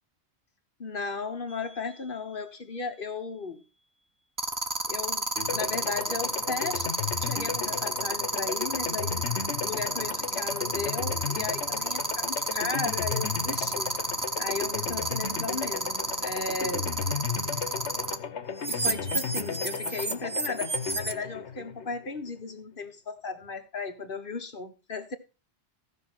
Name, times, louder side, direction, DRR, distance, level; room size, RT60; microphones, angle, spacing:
voice 1, 0.8-3.6 4.9-6.9 7.2-9.3 9.6-13.9 14.4-16.9 18.7-25.2, left 4 dB, 50° left, 1.5 m, -35 dB
sound 1, 1.5-1.8 4.4-18.1 18.6-21.1, right 2 dB, 20° right, 0.8 m, -30 dB
sound 2, 5.4-22.3, left 6 dB, 80° left, 1.3 m, -35 dB
15.5 x 5.5 x 6.1 m
omnidirectional pair, 1.2 m